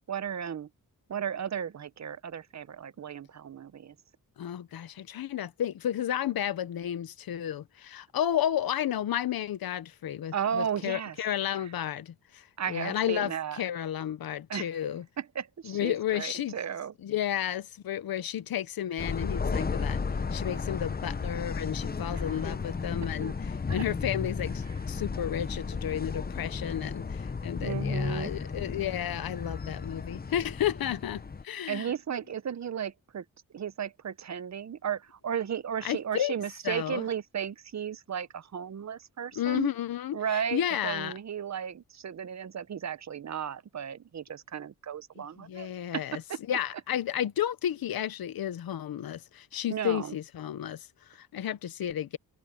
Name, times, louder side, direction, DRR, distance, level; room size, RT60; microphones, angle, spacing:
voice 1, 0.1-0.7 1.1-3.9 10.3-11.2 12.6-13.6 14.5-14.7 15.2-16.9 22.1-22.4 23.2-23.3 23.7-23.8 27.6-28.3 31.7-33.2 33.5-39.7 40.1-46.4 49.7-50.1, right 8 dB, 50° right, 0.8 m, -35 dB
voice 2, 4.4-15.0 15.6-16.6 17.0-20.0 20.3-31.9 35.8-36.3 36.6-37.0 39.3-41.2 45.4-46.2 46.5-52.2, left 10 dB, 90° left, 1.0 m, -32 dB
sound 1, 19.0-31.4, left 5 dB, 25° left, 0.8 m, -34 dB
cardioid pair, 75°, 35 cm